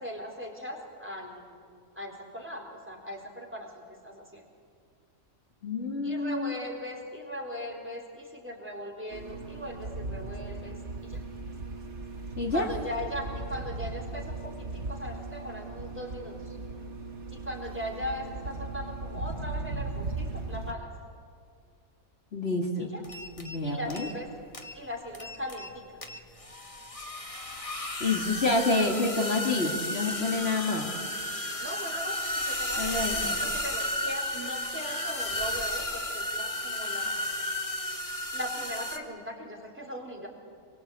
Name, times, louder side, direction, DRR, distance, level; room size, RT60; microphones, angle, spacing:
voice 1, 0.0-1.6 2.0-4.4 6.0-11.2 12.4-16.6 17.3-20.9 22.8-23.0 23.6-24.3 24.7-25.8 31.6-37.2 38.3-40.3, equal, 10° right, 2 dB, 3.9 m, -39 dB
voice 2, 5.6-6.5 12.4-12.7 22.3-22.9 23.4-24.1 28.0-30.9 32.8-33.4, left 2 dB, 45° left, 0 dB, 2.7 m, -28 dB
sound 1, 9.1-20.7, right 3 dB, 55° right, 2.1 m, -38 dB
sound 2, 23.0-23.6 23.9-24.3 24.5-24.8 25.1-25.7 26.0-39.0, left 1 dB, 25° left, 1.9 m, -33 dB
26.5 x 23.0 x 8.3 m, 2.2 s
omnidirectional pair, 1.5 m